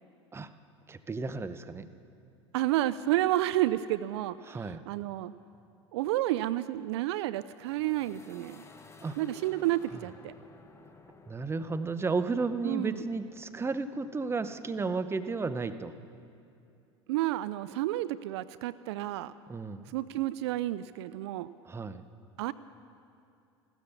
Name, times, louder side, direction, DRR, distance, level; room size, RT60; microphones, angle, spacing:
voice 1, 0.9-1.9 4.5-4.8 9.0-9.2 11.3-15.9 19.5-19.9 21.7-22.0, right 4 dB, 15° right, 11 dB, 0.8 m, -33 dB
voice 2, 2.5-5.3 5.9-8.6 9.2-10.3 12.6-13.1 17.1-19.3 19.9-21.5 22.4-22.5, right 15 dB, 70° right, 16 dB, 0.4 m, -30 dB
sound 1, 7.5-15.3, left 3 dB, 20° left, 1.3 m, -55 dB
15.5 x 13.0 x 6.9 m, 2.5 s
hypercardioid pair, 80°, 15 cm